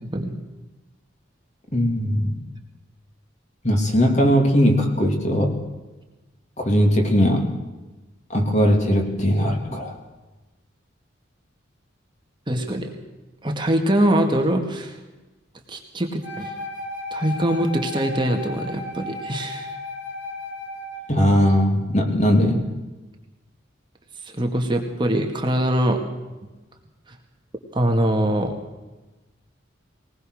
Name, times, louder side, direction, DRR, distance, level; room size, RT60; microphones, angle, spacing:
voice 1, 1.7-2.4 3.6-5.6 6.6-7.5 8.3-10.0 21.1-22.7, equal, 35° left, 3 dB, 2.8 m, -19 dB
voice 2, 12.5-12.9 13.4-14.9 15.7-16.5 17.1-19.7 24.2-26.0 27.7-28.5, right 1 dB, 25° right, 3 dB, 1.9 m, -23 dB
Wind instrument woodwind instrument, 16.2-21.1, left 2 dB, 60° left, 4.1 m, -34 dB
21.0 x 19.5 x 6.5 m, 1.1 s
head